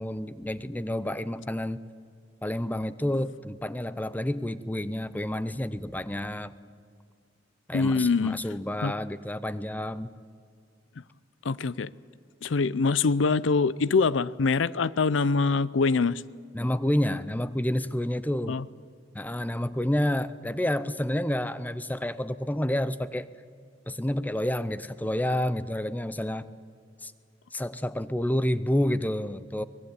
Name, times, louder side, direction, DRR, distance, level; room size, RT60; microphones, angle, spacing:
voice 1, 0.0-1.8 2.4-6.5 7.7-10.1 16.5-18.6 19.1-23.3 23.9-26.5 27.0-27.1 27.5-29.6, left 1 dB, 10° left, 15 dB, 0.7 m, -29 dB
voice 2, 7.7-8.4 8.8-8.9 11.4-11.9 12.4-16.2 18.5-18.7, left 4 dB, 90° left, 19 dB, 0.5 m, -24 dB
23.5 x 20.5 x 8.8 m, 2.1 s
head